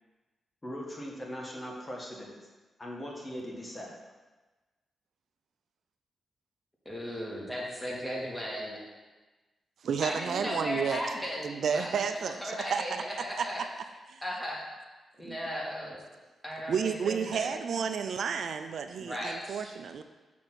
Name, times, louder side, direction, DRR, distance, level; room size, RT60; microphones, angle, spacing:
voice 1, 0.6-2.4 2.8-4.0, equal, 25° left, -1 dB, 1.6 m, -40 dB
voice 2, 6.8-8.8 10.0-13.6 14.2-14.6 15.2-16.0 16.4-17.7 19.0-19.7, equal, 10° left, -5 dB, 2.6 m, -36 dB
voice 3, 9.8-11.0 11.4-12.4 12.7-13.0 13.4-13.5 14.1-14.2 15.2-15.3 16.7-20.0, right 6 dB, 75° right, 8 dB, 0.4 m, -31 dB
6.4 x 4.2 x 6.2 m, 1.2 s
cardioid pair, 65°, 0 cm